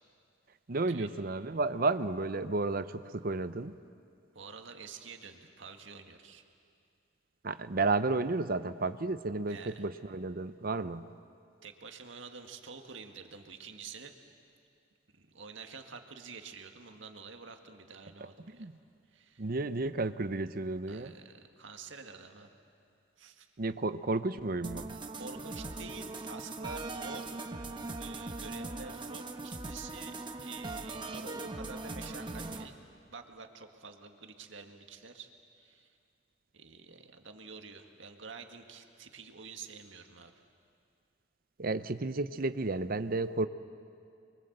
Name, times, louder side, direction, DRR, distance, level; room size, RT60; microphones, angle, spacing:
voice 1, 0.7-3.7 7.4-11.1 18.5-18.7 19.4-21.1 23.6-24.9 41.6-43.5, right 3 dB, 50° right, 12 dB, 0.8 m, -32 dB
voice 2, 4.4-6.4 9.5-9.9 11.6-14.2 15.1-18.7 19.1-19.5 20.9-22.5 23.2-23.5 25.2-27.4 28.0-32.7 33.1-35.3 35.6-35.9 36.5-40.3, right 5 dB, 85° right, 5 dB, 1.8 m, -48 dB
sound 1, 24.6-32.6, right 2 dB, 25° right, 1.2 m, -40 dB
29.5 x 23.0 x 8.0 m, 2.5 s
head